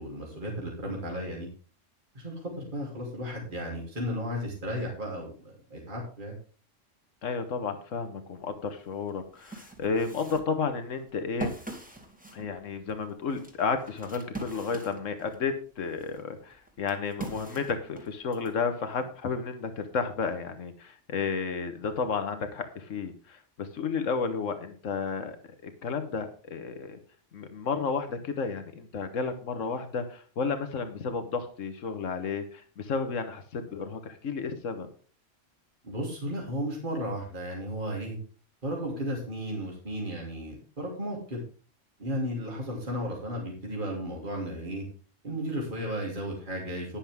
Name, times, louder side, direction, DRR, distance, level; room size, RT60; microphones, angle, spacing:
voice 1, 0.0-1.5 2.1-6.3 35.8-38.2 38.6-41.4 42.0-44.8 45.2-47.0, equal, 40° right, -2 dB, 3.3 m, -34 dB
voice 2, 7.2-11.5 12.3-25.4 25.6-27.0 27.3-34.9, left 5 dB, 85° left, 8 dB, 1.6 m, -32 dB
sound 1, 9.1-15.5 15.9-18.5, right 2 dB, 5° right, 2.2 m, -42 dB
11.5 x 10.0 x 3.6 m, 0.41 s
omnidirectional pair, 1.3 m